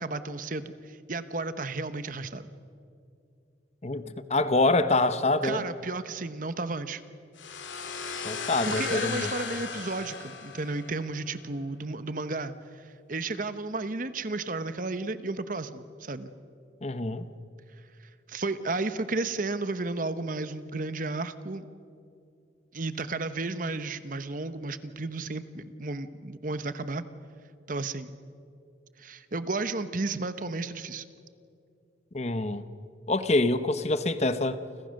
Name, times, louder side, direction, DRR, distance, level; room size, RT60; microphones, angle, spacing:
voice 1, 0.0-2.5 5.4-7.0 8.3-16.3 18.3-21.6 22.7-27.0 27.7-28.1 29.0-31.0, right 3 dB, 45° right, 12 dB, 1.0 m, -33 dB
voice 2, 3.8-5.6 8.2-9.3 16.8-17.3 32.1-32.6 33.1-34.6, left 2 dB, 35° left, 12 dB, 0.9 m, -26 dB
sound 1, 7.4-11.1, left 5 dB, 85° left, 2.8 m, -36 dB
30.0 x 25.5 x 6.5 m, 2.5 s
head